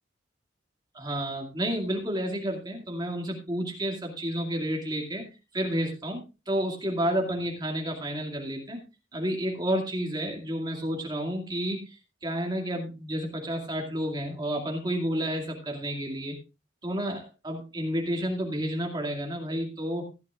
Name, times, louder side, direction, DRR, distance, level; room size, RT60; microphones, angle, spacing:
voice 1, 0.9-5.3 5.5-8.8 9.1-16.3 16.8-20.1, equal, 20° right, 1 dB, 2.3 m, -30 dB
15.5 x 11.0 x 2.5 m, 0.29 s
head